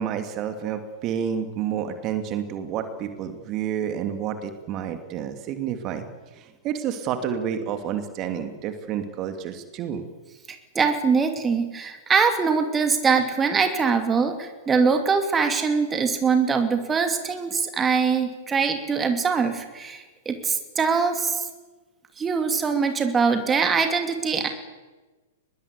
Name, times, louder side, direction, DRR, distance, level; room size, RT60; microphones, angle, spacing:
voice 1, 0.0-6.1 6.4-10.0, right 8 dB, 35° right, 7 dB, 2.7 m, -29 dB
voice 2, 10.7-21.4 22.2-24.5, right 5 dB, 15° right, 6 dB, 2.7 m, -23 dB
23.5 x 21.0 x 8.4 m, 1.2 s
figure-of-eight pair, 105°, 0 cm